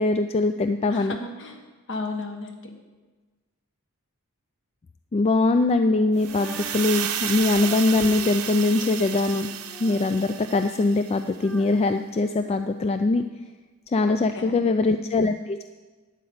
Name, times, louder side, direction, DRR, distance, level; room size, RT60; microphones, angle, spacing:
voice 1, 0.0-1.1 5.1-9.5 9.8-13.2 13.9-15.6, left 3 dB, 30° left, 9 dB, 0.3 m, -22 dB
voice 2, 0.9-1.6 1.9-2.6 14.0-14.6, left 2 dB, 60° left, 4 dB, 1.4 m, -34 dB
Female singing, 6.2-13.2 13.9-14.0, equal, 5° left, 0.8 m, -45 dB
sound 1, 6.2-11.2, right 9 dB, 85° right, 0.9 m, -32 dB
11.5 x 5.2 x 8.6 m, 1.3 s
head